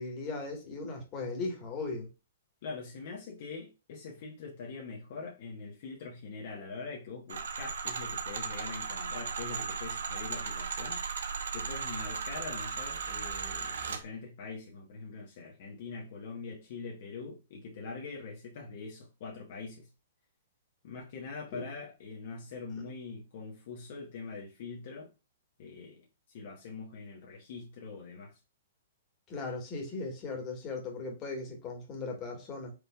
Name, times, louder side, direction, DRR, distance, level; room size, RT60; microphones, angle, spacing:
voice 1, 0.0-2.1 21.5-21.6 29.3-32.7, left 3 dB, 30° left, 1.8 m, -38 dB
voice 2, 2.6-11.0 11.5-19.9 20.8-25.1 25.6-28.4, left 4 dB, 55° left, 1.3 m, -43 dB
sound 1, 7.3-14.0, right 5 dB, 70° right, 0.9 m, -36 dB
5.0 x 3.3 x 2.4 m
hypercardioid pair, 125°, 0 cm